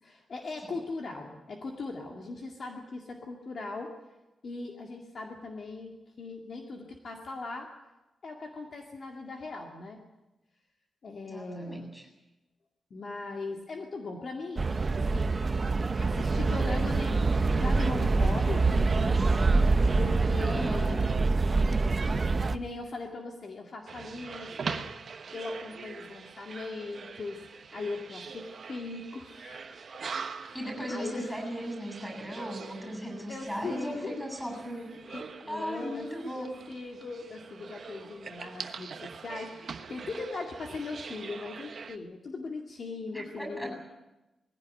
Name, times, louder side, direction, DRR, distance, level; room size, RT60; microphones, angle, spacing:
voice 1, 0.0-3.9 4.4-7.7 8.2-10.0 11.0-11.9 12.9-15.4 16.0-19.2 19.9-21.3 22.2-22.3 22.5-24.8 25.3-29.8 30.4-30.6 30.9-31.4 33.3-34.2 35.1-43.8, left 3 dB, 40° left, 1 dB, 2.1 m, -39 dB
voice 2, 11.3-12.0 20.4-21.0 30.5-34.9 35.5-36.5 43.1-43.8, equal, 5° left, 3 dB, 7.7 m, -37 dB
sound 1, 14.6-22.6, right 3 dB, 25° right, 0.8 m, -25 dB
sound 2, 23.9-42.0, right 5 dB, 45° right, 1.2 m, -43 dB
20.5 x 16.5 x 10.0 m, 1.0 s
wide cardioid pair, 180°, 0 cm